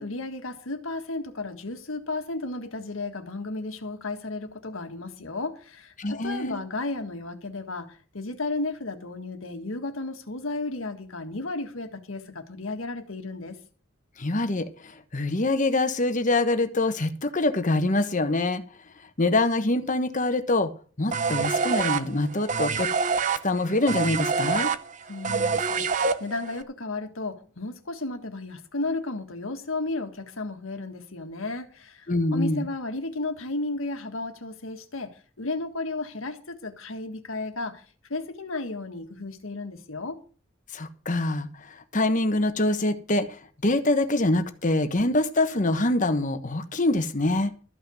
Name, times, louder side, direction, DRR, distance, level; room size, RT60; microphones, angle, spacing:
voice 1, 0.0-13.6 25.1-37.8 38.1-40.2, left 2 dB, 80° left, 1.7 m, -33 dB
voice 2, 6.0-6.6 14.2-18.6 19.2-20.7 21.0-22.9 23.4-24.7 32.1-32.7 40.7-43.4 43.6-47.5, left 2 dB, 40° left, 1.2 m, -25 dB
sound 1, 21.1-26.6, right 5 dB, 35° right, 0.6 m, -26 dB
13.5 x 5.8 x 7.8 m
head